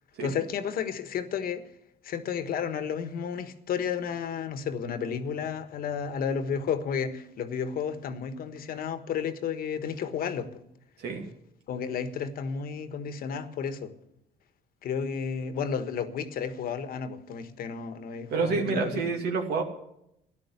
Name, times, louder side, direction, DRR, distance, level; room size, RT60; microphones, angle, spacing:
voice 1, 0.2-1.6 2.0-10.5 11.7-13.9 14.8-18.9, left 7 dB, 60° left, 1.4 m, -32 dB
voice 2, 18.3-19.6, right 4 dB, 70° right, 2.4 m, -28 dB
13.5 x 11.0 x 8.3 m
cardioid pair, 110°, 17 cm